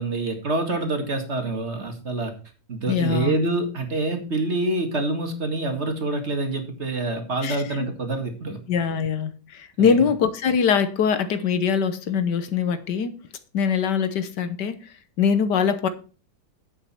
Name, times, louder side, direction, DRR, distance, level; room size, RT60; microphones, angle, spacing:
voice 1, 0.0-2.3 2.7-8.6 9.8-9.9, right 2 dB, 40° right, 2.2 m, -26 dB
voice 2, 2.9-3.4 7.4-7.9 8.7-13.1 13.5-14.8 15.2-15.9, left 6 dB, 75° left, 1.6 m, -23 dB
9.5 x 8.4 x 4.3 m
omnidirectional pair, 1.8 m